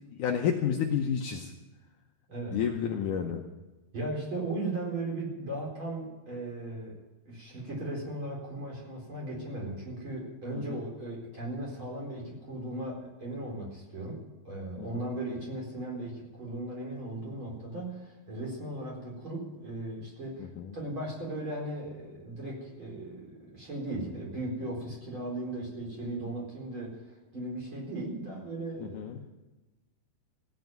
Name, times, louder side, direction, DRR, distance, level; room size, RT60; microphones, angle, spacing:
voice 1, 0.1-1.5 2.5-3.4 10.5-10.8 14.8-15.0 20.6-20.7 28.8-29.2, left 8 dB, 80° left, 2 dB, 1.8 m, -30 dB
voice 2, 2.3-2.7 3.9-7.0 7.3-27.0 27.3-29.3, right 2 dB, 30° right, -3 dB, 4.7 m, -37 dB
16.5 x 9.5 x 9.2 m, 1.1 s
omnidirectional pair, 4.9 m